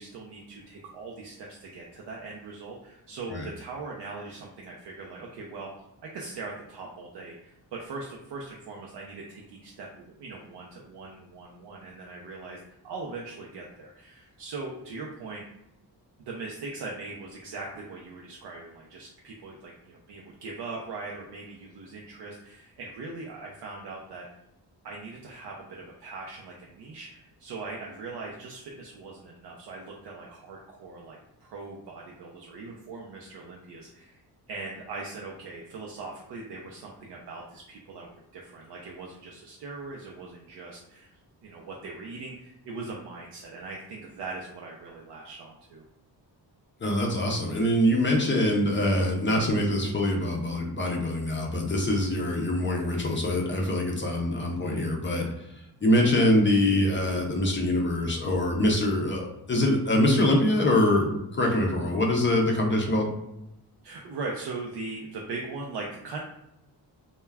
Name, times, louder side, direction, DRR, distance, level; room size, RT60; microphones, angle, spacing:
voice 1, 0.0-5.7 6.0-12.6 12.8-15.4 16.2-24.2 24.8-34.2 34.5-38.1 38.3-41.1 41.4-45.8 63.8-66.2, right 3 dB, 75° right, -2 dB, 0.5 m, -40 dB
voice 2, 46.8-55.5 55.8-63.1, left 1 dB, 30° left, -1 dB, 0.4 m, -24 dB
2.2 x 2.1 x 3.3 m, 0.86 s
wide cardioid pair, 130°, 42 cm